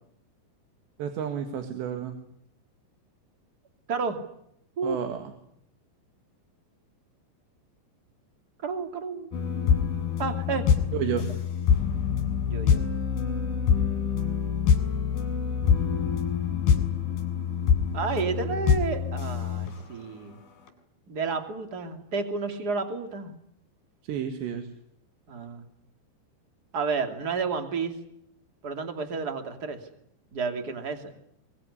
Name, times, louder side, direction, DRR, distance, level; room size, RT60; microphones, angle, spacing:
voice 1, 1.0-2.1 4.8-5.3 10.9-11.3 24.1-24.7, right 8 dB, 70° right, 7 dB, 4.0 m, -31 dB
voice 2, 8.6-9.3 10.2-10.7 12.5-12.8 17.9-20.4 21.1-23.4 25.3-25.7 26.7-27.9 28.6-29.8 30.3-31.1, right 4 dB, 25° right, 7 dB, 2.4 m, -31 dB
sound 1, 9.3-20.1 20.7-20.8, left 7 dB, 55° left, 5.1 m, -25 dB
23.5 x 22.0 x 9.9 m, 0.74 s
omnidirectional pair, 5.3 m